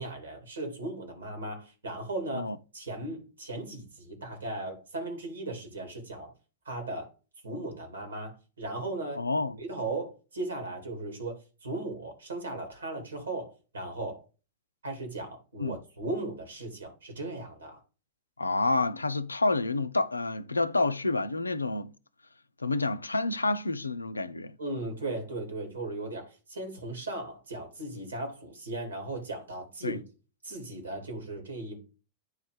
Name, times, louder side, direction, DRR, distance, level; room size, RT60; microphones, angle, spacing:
voice 1, 0.0-6.3 6.6-7.1 7.4-9.2 9.6-14.2 14.8-17.8 24.6-30.0 30.4-31.8, right 2 dB, 75° right, 2.6 m, -37 dB
voice 2, 9.2-9.6 15.6-15.8 18.4-21.9 22.6-24.6 29.8-30.0, left 2 dB, 80° left, 0.4 m, -28 dB
9.5 x 3.2 x 4.9 m
figure-of-eight pair, 90°, 0 cm